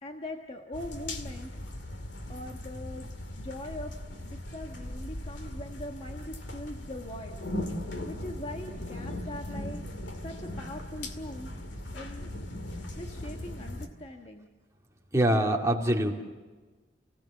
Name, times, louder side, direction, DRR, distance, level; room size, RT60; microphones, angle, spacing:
voice 1, 0.0-1.5 2.3-3.9 4.2-7.4 8.0-9.8 10.2-11.5 11.9-12.3 13.0-14.5, left 1 dB, 35° left, 2 dB, 1.4 m, -41 dB
sound 1, 0.7-13.9, left 1 dB, 75° left, 2.2 m, -39 dB
voice 2, 15.1-16.2, right 1 dB, 15° right, 0 dB, 2.4 m, -24 dB
29.0 x 17.0 x 7.2 m, 1.3 s
head